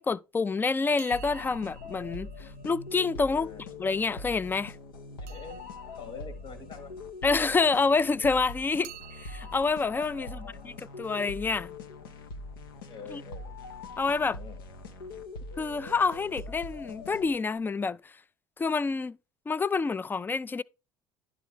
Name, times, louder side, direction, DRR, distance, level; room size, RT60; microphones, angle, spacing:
voice 1, 0.0-3.5 3.8-4.8 7.2-8.9 9.2-11.7 13.1-13.2 14.0-14.4 15.6-18.1 18.6-19.2 19.5-20.6, left 4 dB, 15° left, 0.4 m, -28 dB
sound 1, 1.0-3.7 5.3-8.0 8.8-12.7 16.1-16.5 16.7-16.8 17.6-17.7 17.9-18.0, right 12 dB, 65° right, 0.5 m, -54 dB
sound 2, 1.1-17.6, left 2 dB, 80° left, 0.8 m, -43 dB
voice 2, 3.3-3.6 5.2-6.9 10.2-10.9 12.9-13.5 14.3-14.6, left 5 dB, 50° left, 1.4 m, -46 dB
11.0 x 3.9 x 4.7 m
hypercardioid pair, 60°, 12 cm